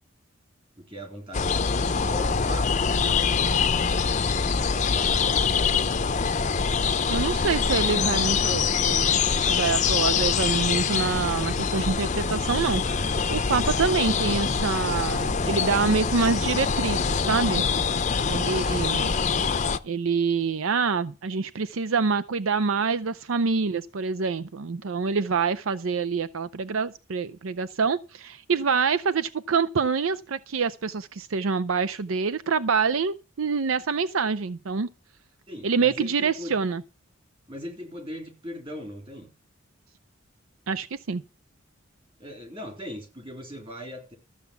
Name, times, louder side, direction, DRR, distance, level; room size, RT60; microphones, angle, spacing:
voice 1, 0.8-1.7 2.0-3.0 4.1-5.8 35.5-36.6 37.5-39.3 42.2-44.1, left 1 dB, 25° right, 3.4 m, -40 dB
sound 1, 1.3-19.8, left 5 dB, 35° left, 0.6 m, -24 dB
voice 2, 7.1-17.7 18.2-19.1 19.8-34.9 35.6-36.8 40.7-41.2, right 5 dB, 80° right, 0.6 m, -26 dB
13.5 x 7.1 x 6.9 m
head